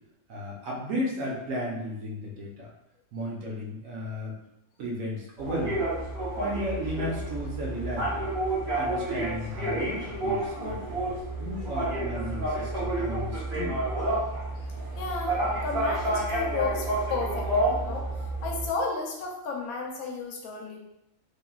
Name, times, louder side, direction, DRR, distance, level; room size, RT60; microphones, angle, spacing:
voice 1, 0.3-2.7 3.1-4.3 4.8-5.8 6.3-8.3 8.7-13.8, equal, 70° right, -2 dB, 1.0 m, -34 dB
sound 1, 5.4-18.7, right 1 dB, 50° right, 1.2 m, -30 dB
voice 2, 15.0-18.1 18.4-20.8, left 3 dB, 75° left, 0 dB, 1.0 m, -33 dB
3.0 x 2.5 x 2.2 m, 0.85 s
omnidirectional pair, 1.6 m